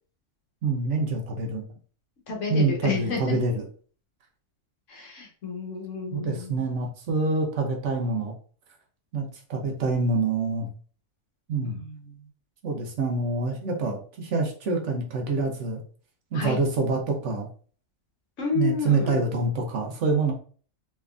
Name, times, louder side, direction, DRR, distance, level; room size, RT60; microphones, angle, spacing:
voice 1, 0.6-1.6 2.5-3.6 6.1-8.3 9.1-9.2 9.5-10.7 11.5-11.8 12.6-15.8 16.3-17.5 18.5-20.3, right 3 dB, 65° right, 2 dB, 0.9 m, -26 dB
voice 2, 2.3-3.4 4.9-6.7 11.6-12.2 16.3-16.6 18.4-19.2, left 4 dB, 65° left, 0 dB, 1.3 m, -31 dB
3.4 x 3.2 x 2.4 m, 0.43 s
omnidirectional pair, 1.4 m